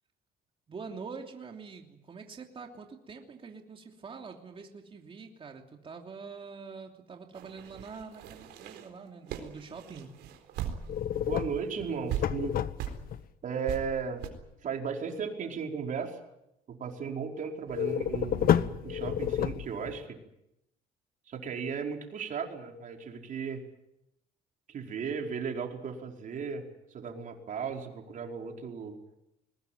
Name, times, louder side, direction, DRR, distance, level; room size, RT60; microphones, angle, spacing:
voice 1, 0.7-10.1, right 5 dB, 30° right, 2 dB, 3.1 m, -45 dB
sound 1, 7.3-11.1 11.5-11.6 12.1-12.2 12.8-13.0 13.7-13.8 14.2-14.3, right 11 dB, 85° right, 4.1 m, -38 dB
sound 2, 10.9-13.2 17.7-20.0, left 10 dB, 60° left, 1.2 m, -29 dB
voice 2, 11.3-12.5 13.4-14.2 14.6-16.2 16.7-20.2 21.3-23.6 24.7-26.6 26.9-29.0, right 6 dB, 50° right, 2 dB, 4.9 m, -35 dB
22.0 x 20.5 x 9.3 m, 0.85 s
cardioid pair, 110°, 17 cm